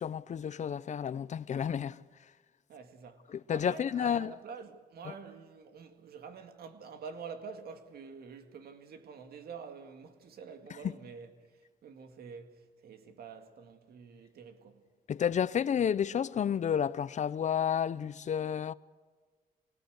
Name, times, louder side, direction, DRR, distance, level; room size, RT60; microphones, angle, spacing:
voice 1, 0.0-2.0 3.3-4.3 15.1-18.7, left 8 dB, 50° left, 0.6 m, -31 dB
voice 2, 2.7-14.9, right 5 dB, 80° right, 2.1 m, -47 dB
24.0 x 18.5 x 8.0 m
cardioid pair, 115°, 16 cm